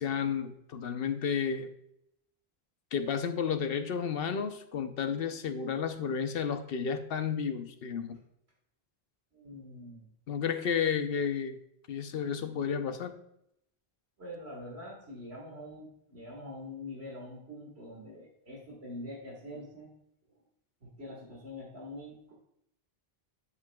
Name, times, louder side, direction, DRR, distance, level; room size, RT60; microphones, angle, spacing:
voice 1, 0.0-1.7 2.9-8.2 10.3-11.6 11.9-13.2, left 7 dB, 65° left, 9 dB, 0.9 m, -32 dB
voice 2, 9.3-10.1 14.2-19.9 20.8-22.3, left 1 dB, 85° right, -2 dB, 2.0 m, -44 dB
9.9 x 7.4 x 2.3 m, 0.78 s
omnidirectional pair, 1.0 m